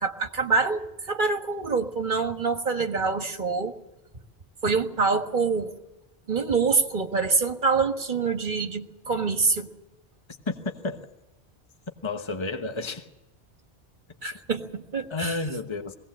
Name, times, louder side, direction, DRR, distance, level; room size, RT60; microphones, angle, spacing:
voice 1, 0.0-3.8 4.6-5.7 6.3-9.7 14.2-15.4, right 4 dB, 50° right, 1.7 m, -25 dB
voice 2, 12.0-13.1 15.1-16.0, left 3 dB, 25° left, 1.2 m, -31 dB
20.5 x 17.5 x 7.5 m
omnidirectional pair, 1.1 m